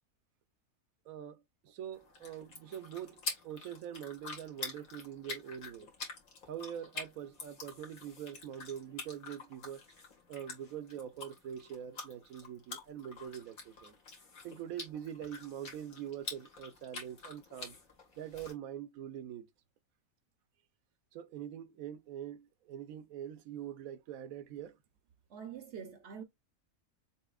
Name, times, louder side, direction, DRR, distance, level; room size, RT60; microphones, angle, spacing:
voice 1, 1.1-5.9 6.5-9.8 10.3-13.9 14.4-17.7 18.2-19.5 21.1-24.8, right 10 dB, 80° right, 1.1 m, -44 dB
sound 1, 1.9-18.5, left 3 dB, 80° left, 2.3 m, -47 dB
voice 2, 25.3-26.2, right 7 dB, 60° right, 0.9 m, -45 dB
7.0 x 2.8 x 2.3 m
omnidirectional pair, 1.5 m